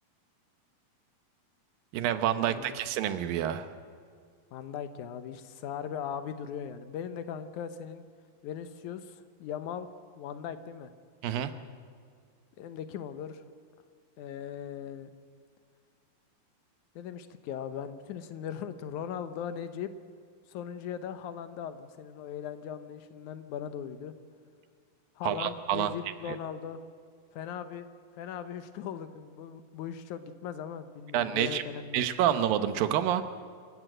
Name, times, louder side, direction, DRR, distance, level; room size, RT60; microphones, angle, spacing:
voice 1, 1.9-3.7 11.2-11.5 25.2-25.9 26.3-26.4 31.1-31.6 31.9-33.2, right 11 dB, 75° right, 10 dB, 2.6 m, -28 dB
voice 2, 4.5-8.1 8.4-10.9 12.6-13.4 14.2-15.1 17.0-19.9 20.5-24.1 25.2-26.8 27.3-27.9 28.2-32.0, left 8 dB, 70° left, 10 dB, 2.0 m, -39 dB
27.5 x 14.0 x 7.9 m, 2.1 s
omnidirectional pair, 4.3 m